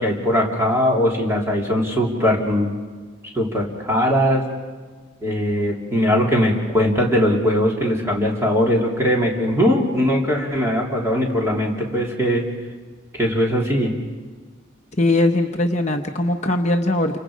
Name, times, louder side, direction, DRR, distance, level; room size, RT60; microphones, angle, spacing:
voice 1, 0.0-2.7 3.3-4.4 5.2-12.4 13.2-13.9, equal, 15° right, -3 dB, 3.5 m, -20 dB
voice 2, 15.0-17.2, left 2 dB, 35° left, 3 dB, 0.9 m, -20 dB
29.0 x 26.0 x 5.1 m, 1.4 s
head